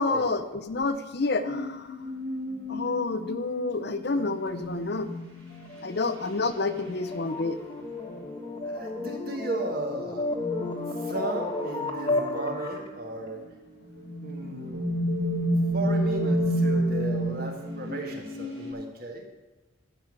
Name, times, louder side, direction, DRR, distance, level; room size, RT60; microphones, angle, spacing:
voice 1, 0.0-2.1 2.7-5.1 5.8-7.6, left 3 dB, 50° left, 10 dB, 0.6 m, -29 dB
sound 1, 1.4-5.7 6.9-7.1 8.0-8.6 9.0-9.4 9.8-11.4 11.7-12.6 13.4-13.5 13.8-18.7, right 1 dB, 80° right, 5.1 m, -30 dB
sound 2, 5.6-12.9, left 2 dB, 25° left, 1.2 m, -33 dB
voice 2, 8.6-10.3 11.0-13.4 14.2-14.9 15.7-19.2, right 1 dB, 45° right, 2 dB, 1.9 m, -35 dB
12.0 x 5.5 x 8.7 m, 1.1 s
head